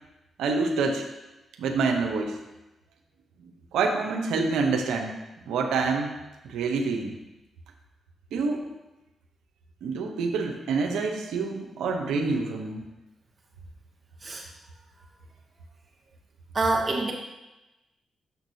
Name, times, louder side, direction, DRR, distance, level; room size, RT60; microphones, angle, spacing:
voice 1, 0.4-1.0 1.6-2.4 3.7-5.1 5.5-6.2 6.4-7.2 8.3-8.7 9.8-12.8, right 4 dB, 85° right, 2 dB, 0.7 m, -27 dB
voice 2, 16.5-17.1, right 3 dB, 40° right, -1 dB, 1.0 m, -25 dB
6.8 x 5.9 x 2.7 m, 1.0 s
supercardioid pair, 50°, 0 cm